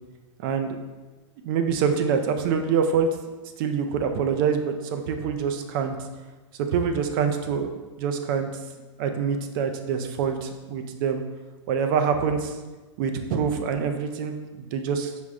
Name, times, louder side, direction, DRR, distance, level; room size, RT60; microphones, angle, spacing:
voice 1, 0.4-0.8 1.4-3.1 3.6-5.9 6.6-7.7 8.0-8.5 9.0-11.2 11.7-12.6 13.0-15.1, right 6 dB, 45° right, 6 dB, 0.4 m, -25 dB
4.9 x 2.0 x 3.6 m, 1.2 s
hypercardioid pair, 145°, 16 cm